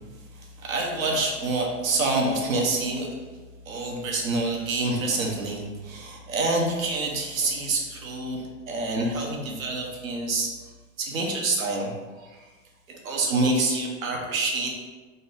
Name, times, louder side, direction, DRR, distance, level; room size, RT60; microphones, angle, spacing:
voice 1, 0.4-3.1 3.7-10.5 11.0-12.0 12.2-12.4 12.9-14.8, right 2 dB, 85° right, 0 dB, 1.1 m, -27 dB
4.0 x 2.7 x 3.8 m, 1.3 s
hypercardioid pair, 110°, 39 cm